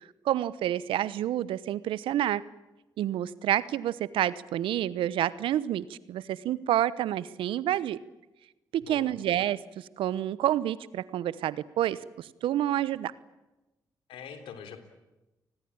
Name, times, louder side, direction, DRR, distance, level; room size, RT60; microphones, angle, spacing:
voice 1, 0.2-2.4 3.0-8.0 8.7-13.1, right 12 dB, 75° right, 18 dB, 1.0 m, -29 dB
voice 2, 8.8-9.1 14.1-14.8, left 7 dB, 75° left, 8 dB, 3.6 m, -43 dB
30.0 x 20.5 x 8.8 m, 1.0 s
hypercardioid pair, 45°, 9 cm